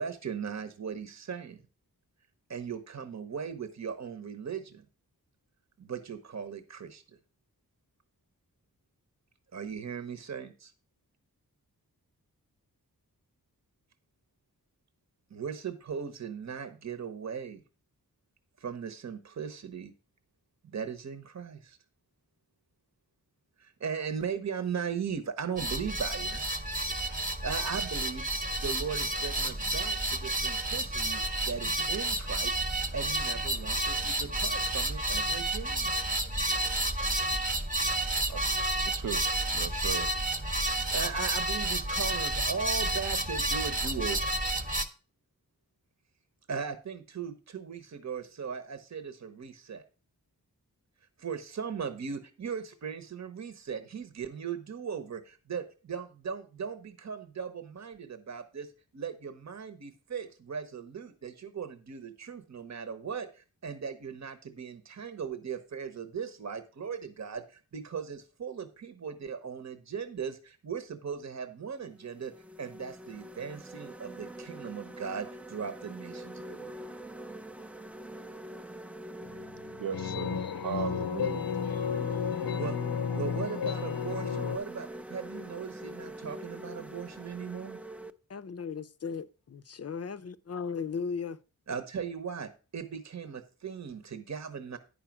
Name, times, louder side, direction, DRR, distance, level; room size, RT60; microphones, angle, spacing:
voice 1, 0.0-1.6 2.5-4.8 5.8-7.0 9.5-10.7 15.3-17.6 18.6-19.9 20.7-21.8 23.6-26.5 27.1-28.3 28.5-32.6 32.9-35.9 40.9-44.4 46.5-49.8 51.2-72.3 72.6-76.9 82.6-82.8 83.1-87.8 91.7-94.8, right 6 dB, 50° right, 0.9 m, -38 dB
sound 1, 25.6-44.9, right 1 dB, 25° right, 1.0 m, -30 dB
voice 2, 39.5-40.1 79.8-81.5, right 8 dB, 75° right, 0.7 m, -37 dB
sound 2, 71.2-71.4 71.9-88.1, right 1 dB, 5° right, 0.4 m, -44 dB
sound 3, 79.2-84.6, left 7 dB, 90° left, 0.7 m, -32 dB
voice 3, 88.3-91.4, left 5 dB, 45° left, 0.5 m, -36 dB
10.0 x 5.2 x 5.9 m
wide cardioid pair, 105°, 35 cm